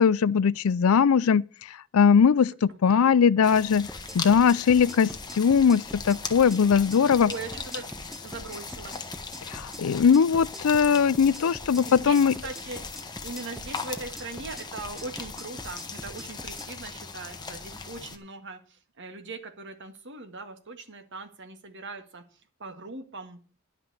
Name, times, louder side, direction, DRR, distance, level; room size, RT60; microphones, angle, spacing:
voice 1, 0.0-1.4 1.9-3.9 4.1-7.3 9.5-12.3, left 6 dB, 75° left, 0.4 m, -20 dB
sound 1, 3.4-18.2, left 4 dB, 20° left, 1.2 m, -39 dB
sound 2, 3.9-16.7, equal, ahead, 0.5 m, -44 dB
voice 2, 7.2-7.9 8.2-9.0 11.9-12.2 12.4-12.8 13.2-18.6 19.0-22.2 22.6-23.4, right 3 dB, 55° right, 1.8 m, -40 dB
11.5 x 5.9 x 8.0 m
head